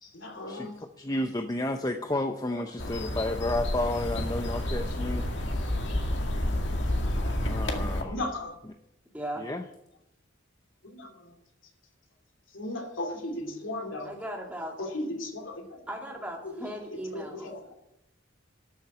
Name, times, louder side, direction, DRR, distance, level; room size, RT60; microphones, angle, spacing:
voice 1, 0.1-0.8 2.4-2.6 8.0-8.6 10.8-11.4 12.5-14.1 14.8-15.8 16.4-17.7, left 1 dB, 80° left, 3 dB, 2.8 m, -37 dB
voice 2, 1.0-5.3 7.5-8.1 9.4-9.6, left 1 dB, 20° left, 5 dB, 0.7 m, -31 dB
sound 1, 2.8-8.0, left 1 dB, 65° left, 2.1 m, -30 dB
voice 3, 9.1-9.4 14.1-14.7 15.9-17.5, equal, 5° right, -1 dB, 2.8 m, -37 dB
13.0 x 7.3 x 9.6 m, 0.83 s
head